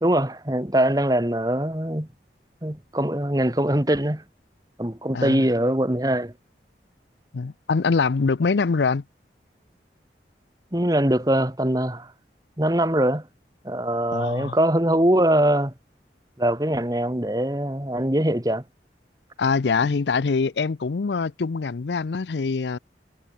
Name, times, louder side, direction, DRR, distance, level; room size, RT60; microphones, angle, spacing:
voice 1, 0.0-2.1 2.6-4.2 4.8-6.4 10.7-12.1 12.6-13.3 13.6-15.7 16.4-18.7, right 1 dB, 20° right, 1.9 m, -22 dB
voice 2, 7.3-9.0 14.1-14.6 19.4-22.8, left 4 dB, 80° left, 0.5 m, -24 dB
head